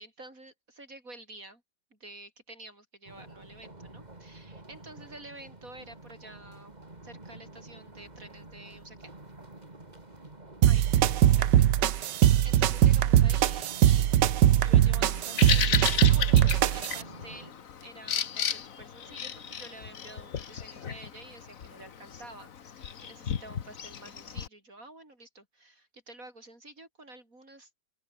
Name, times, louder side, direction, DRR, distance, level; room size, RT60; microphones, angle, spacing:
voice 1, 0.0-1.6 1.9-6.8 7.0-9.1 10.6-15.7 16.1-27.7, right 2 dB, 50° right, 7.9 m, -49 dB
sound 1, 3.0-17.5, right 2 dB, 25° right, 3.0 m, -48 dB
sound 2, 10.6-17.0, right 11 dB, 85° right, 1.6 m, -21 dB
Bird vocalization bird call bird song, 15.1-24.5, left 8 dB, 55° left, 1.5 m, -34 dB
open air
omnidirectional pair, 1.9 m